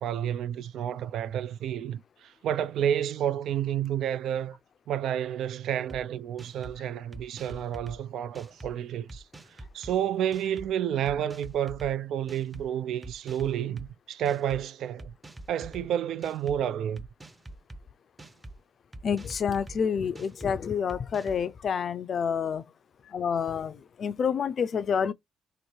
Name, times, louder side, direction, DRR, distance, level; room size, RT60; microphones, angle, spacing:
voice 1, 0.0-4.6 4.9-9.2 9.7-15.1 15.5-17.1, right 10 dB, 75° right, 0.3 m, -30 dB
sound 1, 5.9-6.0 6.4-6.8 7.1-8.0 8.3-8.7 9.1-9.9 10.3-10.7 11.1-11.9 12.3-12.6 13.0-13.9 14.3-14.6 15.0-15.8 16.2-16.6 17.0-17.8 18.2-18.6 18.9-19.8 20.2-20.5 20.9-21.4, right 1 dB, 20° right, 0.6 m, -44 dB
voice 2, 19.0-22.6 23.1-25.1, left 7 dB, 55° left, 0.4 m, -28 dB
3.0 x 2.6 x 4.3 m
cardioid pair, 90°, 0 cm